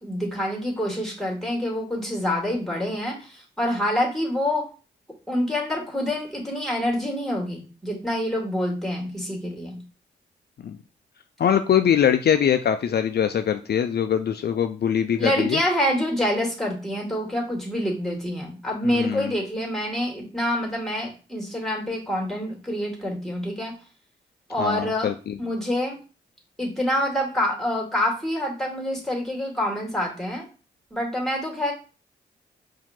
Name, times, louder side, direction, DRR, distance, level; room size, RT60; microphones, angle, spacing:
voice 1, 0.0-4.7 5.3-9.8 15.2-23.7 24.5-25.1 25.4-26.0 26.6-30.5 30.9-31.7, left 1 dB, ahead, -1 dB, 2.4 m, -26 dB
voice 2, 11.4-15.6 18.8-19.3 24.6-25.3, left 8 dB, 60° left, 8 dB, 0.4 m, -22 dB
4.7 x 2.8 x 3.7 m, 0.35 s
supercardioid pair, 45°, 19 cm